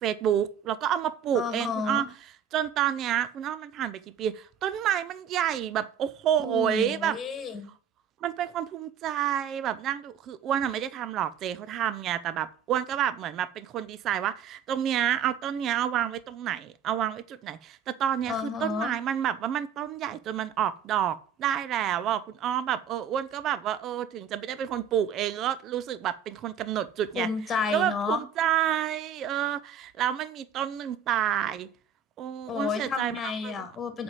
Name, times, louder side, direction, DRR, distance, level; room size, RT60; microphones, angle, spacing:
voice 1, 0.0-2.1 2.5-7.2 8.2-27.3 27.7-31.7 32.2-33.7, right 10 dB, 35° right, 0.7 m, -29 dB
voice 2, 1.3-2.1 6.4-7.7 18.3-18.9 27.2-28.2 32.5-34.0, left 5 dB, 20° left, 1.9 m, -31 dB
7.9 x 5.3 x 7.5 m
figure-of-eight pair, 90°, 0 cm